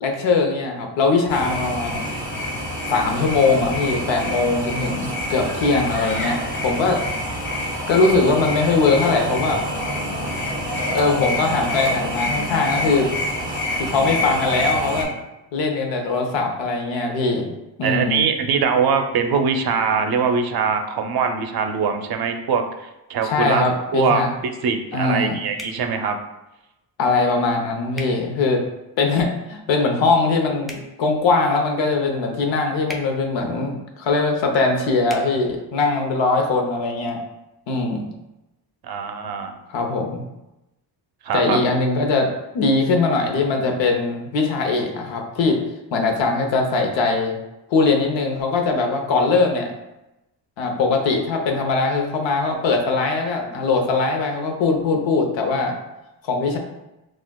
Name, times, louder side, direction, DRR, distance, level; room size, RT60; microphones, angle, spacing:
voice 1, 0.0-2.0 2.9-7.0 7.9-9.6 10.9-13.1 13.8-15.1 15.5-17.5 17.8-18.2 23.2-24.3 24.9-25.4 27.0-28.6 29.0-37.2 37.7-38.1 39.7-40.2 41.3-42.3 42.5-45.6 45.9-47.3 47.7-49.7 50.6-55.7 56.2-56.6, left 3 dB, 85° left, 3 dB, 0.8 m, -21 dB
sound 1, 1.3-15.0, left 1 dB, 25° left, 1.3 m, -26 dB
voice 2, 17.8-23.6 23.9-26.2 38.8-39.5 41.2-41.6, right 6 dB, 55° right, 6 dB, 0.6 m, -22 dB
sound 2, 25.6-25.8 27.9-28.1 30.6-30.9 32.8-33.1 35.0-35.2, equal, ahead, 0.6 m, -35 dB
6.0 x 2.4 x 2.2 m, 0.95 s
cardioid pair, 100°, 44 cm